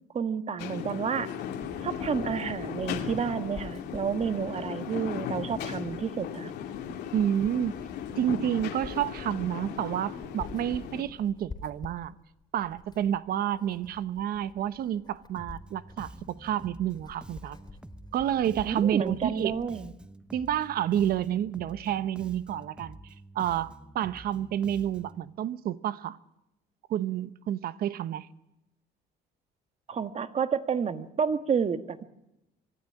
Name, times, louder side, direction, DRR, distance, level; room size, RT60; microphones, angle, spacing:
voice 1, 0.1-1.3 1.8-6.5 18.6-19.9 29.9-32.0, right 6 dB, 40° right, 1.5 m, -30 dB
sound 1, 0.6-11.0, left 8 dB, 80° left, 2.5 m, -37 dB
Writing, 1.2-19.8, left 3 dB, 25° left, 3.5 m, -49 dB
voice 2, 7.1-7.8 8.2-12.2 12.5-17.6 18.1-19.5 20.3-23.0 23.3-26.2 26.9-28.3, right 10 dB, 65° right, 1.0 m, -29 dB
Bass guitar, 15.4-25.2, right 1 dB, 5° right, 0.9 m, -49 dB
24.5 x 13.0 x 9.9 m
cardioid pair, 110°, 17 cm